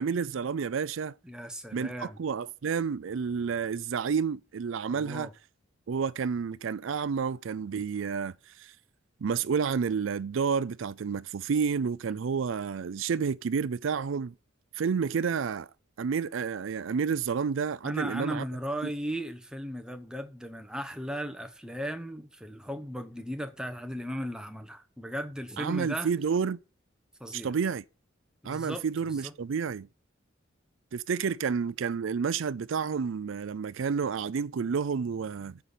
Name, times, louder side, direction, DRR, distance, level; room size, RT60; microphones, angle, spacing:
voice 1, 0.0-1.1 1.7-5.3 5.9-8.7 9.2-14.3 14.7-15.7 16.0-18.4 25.6-26.6 27.3-27.8 28.4-29.9 30.9-35.6, right 6 dB, 70° right, 0.4 m, -30 dB
voice 2, 1.2-2.2 4.9-5.3 17.8-26.1 27.2-27.5 28.4-28.8 29.2-29.3, equal, 5° right, 1.0 m, -36 dB
9.0 x 5.8 x 8.3 m
head